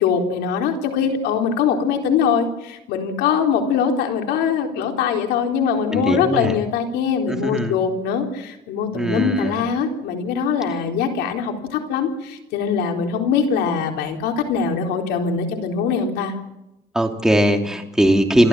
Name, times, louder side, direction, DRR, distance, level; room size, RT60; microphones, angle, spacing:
voice 1, 0.0-16.3, left 6 dB, 90° left, 3 dB, 4.0 m, -22 dB
voice 2, 5.9-6.6 7.3-7.8 8.9-9.6 16.9-18.5, equal, 5° right, 3 dB, 3.0 m, -20 dB
28.5 x 13.0 x 7.6 m, 0.89 s
cardioid pair, 110°, 17 cm